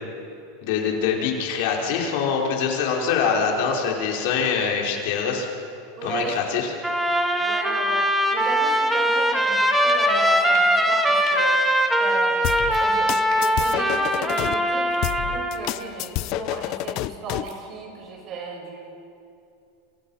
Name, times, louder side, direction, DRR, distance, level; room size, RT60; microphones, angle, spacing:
voice 1, 0.6-5.5 6.0-6.7, left 6 dB, 65° left, 0 dB, 5.0 m, -24 dB
voice 2, 3.3-3.8 6.0-6.3 7.4-11.7 12.0-18.9, right 3 dB, 40° right, 1 dB, 7.5 m, -35 dB
Trumpet, 6.8-15.6, equal, 5° right, 2.3 m, -21 dB
sound 1, 9.9-10.1 10.5-10.8 11.2-11.4 12.4-12.8 13.3-13.6 14.1-14.4 14.9-15.2 15.6-15.9 16.6-16.8 17.3-17.6, right 7 dB, 60° right, 5.2 m, -43 dB
sound 2, 12.4-14.5 15.0-17.5, left 17 dB, 50° left, 0.6 m, -29 dB
28.5 x 28.5 x 5.8 m, 2.6 s
supercardioid pair, 140°, 0 cm